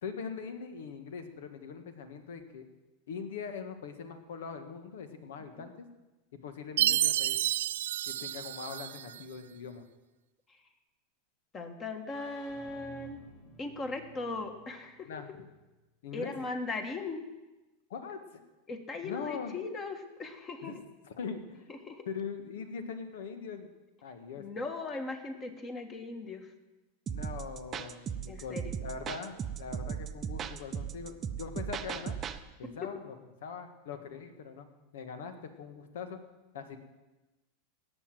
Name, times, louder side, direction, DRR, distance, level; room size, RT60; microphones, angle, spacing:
voice 1, 0.0-2.7 3.1-5.9 6.4-7.5 8.0-9.8 15.0-15.5 16.0-16.3 17.9-18.2 19.0-19.6 20.6-20.8 21.0-21.7 22.1-23.7 24.0-24.4 27.1-32.1 32.6-33.2 33.4-34.7 34.9-36.2 36.5-36.8, left 6 dB, 85° left, 8 dB, 1.7 m, -41 dB
Chime, 6.8-9.2, right 12 dB, 85° right, 0.4 m, -30 dB
voice 2, 11.5-13.2 13.6-15.2 16.1-17.2 18.7-20.8 21.7-22.1 24.4-26.5 28.3-28.8, left 3 dB, 20° left, 7 dB, 1.5 m, -38 dB
sound 1, 12.1-15.8, left 1 dB, 55° left, 4.6 m, -54 dB
sound 2, 27.1-32.4, right 8 dB, 25° right, 0.6 m, -37 dB
18.5 x 7.1 x 7.6 m, 1.1 s
supercardioid pair, 150°, 0 cm